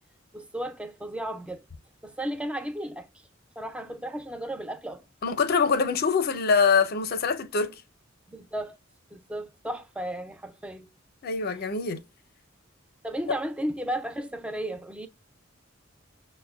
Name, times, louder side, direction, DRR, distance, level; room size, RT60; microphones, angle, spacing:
voice 1, 0.3-1.6 2.0-3.1 3.6-5.0 8.3-8.8 9.1-10.9 13.0-15.1, right 1 dB, 5° right, 0.4 m, -34 dB
voice 2, 5.2-7.7 11.2-12.0, left 5 dB, 50° left, 0.5 m, -24 dB
6.1 x 2.1 x 2.2 m
head